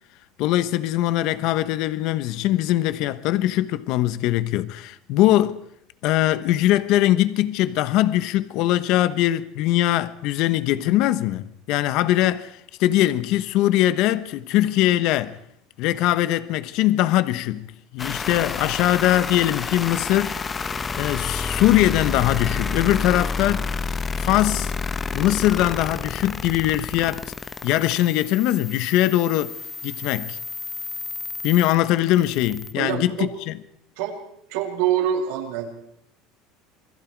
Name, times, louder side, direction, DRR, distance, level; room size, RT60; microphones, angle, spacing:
voice 1, 0.4-5.6 6.0-15.4 15.8-17.7 17.9-20.3 20.9-23.7 24.2-24.7 25.1-27.3 27.6-29.5 29.8-30.4 31.4-33.5, left 14 dB, 55° left, 1.1 m, -21 dB
sound 1, 18.0-32.7, left 4 dB, 20° left, 1.0 m, -30 dB
voice 2, 32.8-33.3 34.0-34.2 34.5-35.7, right 10 dB, 80° right, 6.9 m, -25 dB
28.0 x 22.0 x 4.7 m
cardioid pair, 150°, 0 cm